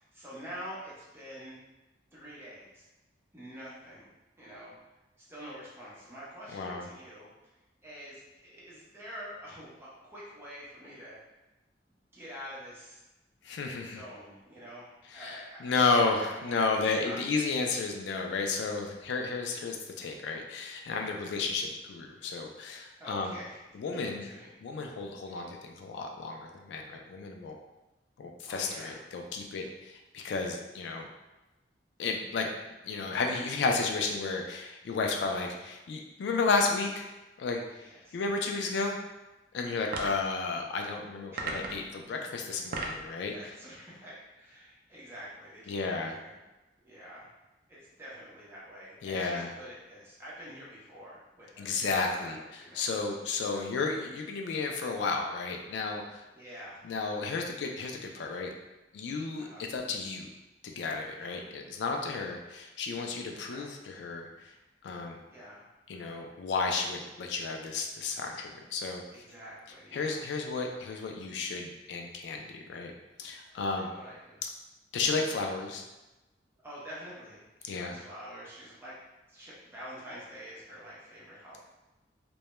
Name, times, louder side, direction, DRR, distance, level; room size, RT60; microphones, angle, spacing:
voice 1, 0.0-1.6 2.1-2.9 3.3-4.1 4.4-4.7 5.2-7.3 7.8-11.2 12.1-13.0 13.8-14.9 15.1-17.2 21.0-21.4 23.0-23.6 23.9-25.0 25.3-25.4 28.4-29.0 35.3-35.6 37.8-38.2 39.7-40.0 41.3-41.5 43.3-46.4 46.8-47.3 47.7-51.8 52.2-52.8 53.5-53.7 56.3-56.9 59.4-59.7 61.1-61.4 63.5-63.7 65.3-65.7 69.1-70.2 70.6-71.0 73.5-74.4 76.6-79.0 79.3-81.6, equal, 15° right, -7 dB, 0.7 m, -47 dB
voice 2, 6.5-6.9 13.4-14.0 15.1-23.4 23.7-24.3 24.6-27.6 28.2-31.1 32.0-32.5 32.8-37.1 37.4-37.9 38.1-39.0 39.5-43.3 45.7-46.2 49.0-49.5 51.6-52.4 52.7-56.2 56.8-58.5 58.9-60.3 60.6-64.5 64.8-65.2 65.9-69.0 69.9-72.9 73.2-73.9 74.4-74.5 74.9-75.8 77.6-78.0, left 4 dB, 75° left, 2 dB, 0.3 m, -32 dB
sound 1, 39.9-40.3 41.4-41.9 42.5-43.1, right 3 dB, 55° right, 0.3 m, -35 dB
2.2 x 2.1 x 2.9 m, 1.0 s
head